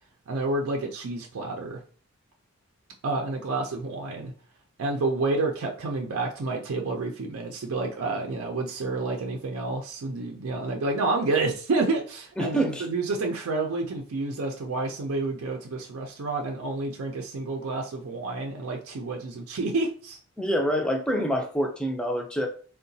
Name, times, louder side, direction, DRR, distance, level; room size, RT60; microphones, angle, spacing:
voice 1, 0.3-1.8 3.0-4.3 4.8-20.2, right 3 dB, 90° right, 1 dB, 0.5 m, -29 dB
voice 2, 12.4-12.8 20.4-22.5, equal, 5° left, 2 dB, 0.4 m, -26 dB
3.7 x 2.2 x 2.7 m, 0.42 s
head